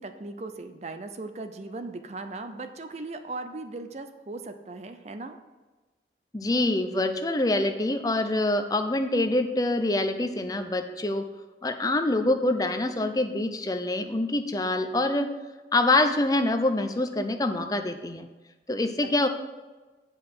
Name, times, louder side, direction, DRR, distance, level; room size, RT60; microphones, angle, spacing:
voice 1, 0.0-5.4 19.0-19.3, right 3 dB, 35° right, 8 dB, 0.5 m, -38 dB
voice 2, 6.3-11.2 11.6-15.3 15.7-18.3 18.7-19.3, left 2 dB, 20° left, 6 dB, 0.5 m, -25 dB
7.9 x 5.3 x 6.0 m, 1.2 s
head